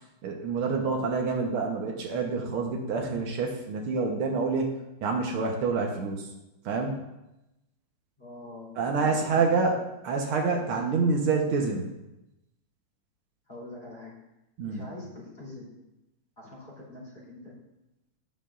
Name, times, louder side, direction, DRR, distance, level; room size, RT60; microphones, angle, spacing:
voice 1, 0.2-4.7 5.0-6.3 6.6-7.0 8.8-9.8 10.0-11.9 14.6-14.8, right 4 dB, 85° right, 1 dB, 2.0 m, -27 dB
voice 2, 8.2-9.7 11.2-11.4 13.5-14.1 14.6-15.7 16.4-17.5, left 2 dB, 20° left, -5 dB, 3.6 m, -44 dB
11.0 x 9.9 x 2.5 m, 0.93 s
omnidirectional pair, 2.3 m